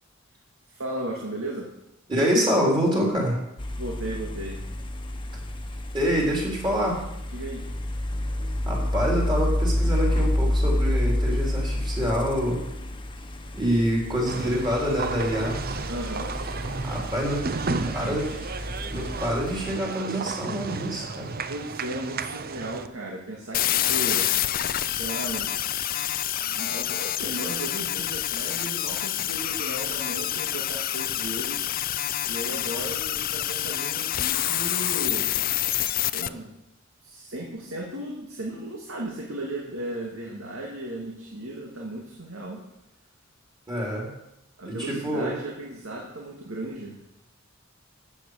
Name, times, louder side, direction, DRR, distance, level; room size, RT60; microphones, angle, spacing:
voice 1, 0.7-1.7 3.8-4.7 7.3-7.6 14.2-14.6 15.9-16.4 17.7-18.4 21.5-24.3 24.8-25.5 26.4-31.7 32.3-35.3 36.1-36.5 37.0-42.6 44.6-47.0, right 1 dB, 80° right, -1 dB, 2.3 m, -35 dB
voice 2, 2.1-3.4 5.9-7.0 8.7-12.6 13.5-15.6 16.8-18.2 18.9-21.3 43.7-44.1 44.7-45.4, equal, 25° right, -2 dB, 4.0 m, -26 dB
sound 1, 3.6-19.7, left 1 dB, 25° left, 1.1 m, -29 dB
sound 2, 14.2-22.9, right 4 dB, 45° right, 0.6 m, -33 dB
sound 3, 23.5-36.3, left 12 dB, 45° left, 0.5 m, -27 dB
13.5 x 8.6 x 6.6 m, 0.86 s
head